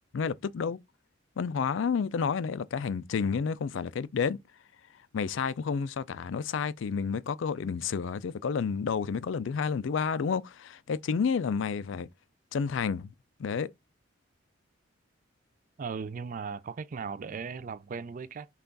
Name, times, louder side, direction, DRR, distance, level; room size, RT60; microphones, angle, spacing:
voice 1, 0.1-0.8 1.4-4.4 5.1-12.1 12.5-13.1 13.4-13.7, left 6 dB, 70° left, 0.4 m, -30 dB
voice 2, 15.8-18.5, right 5 dB, 40° right, 0.3 m, -37 dB
5.6 x 2.4 x 3.9 m
head